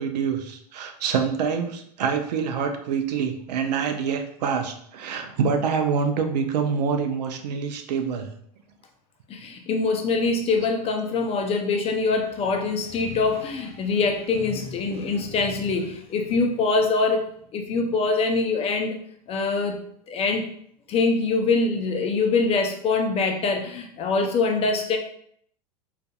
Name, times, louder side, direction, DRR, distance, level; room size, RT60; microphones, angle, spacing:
voice 1, 0.0-8.3, right 6 dB, 80° right, 5 dB, 0.5 m, -26 dB
voice 2, 9.3-17.3 17.5-19.0 19.3-19.8 20.1-20.5 20.9-25.0, left 4 dB, 30° left, 4 dB, 0.4 m, -24 dB
2.5 x 2.4 x 2.3 m, 0.66 s
hypercardioid pair, 100°, 21 cm